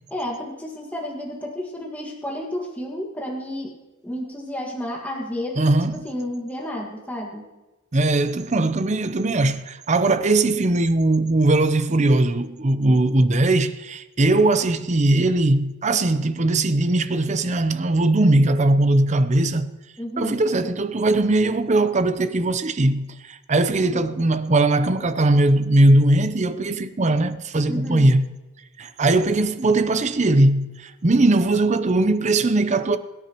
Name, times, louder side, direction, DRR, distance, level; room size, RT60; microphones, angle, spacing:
voice 1, 0.1-3.7 4.0-7.4 20.0-20.4 27.7-28.1, left 1 dB, 10° left, 1.7 m, -31 dB
voice 2, 5.6-6.0 7.9-19.7 20.2-28.2 28.8-33.0, right 2 dB, 35° right, 0.6 m, -20 dB
22.5 x 9.9 x 3.0 m
head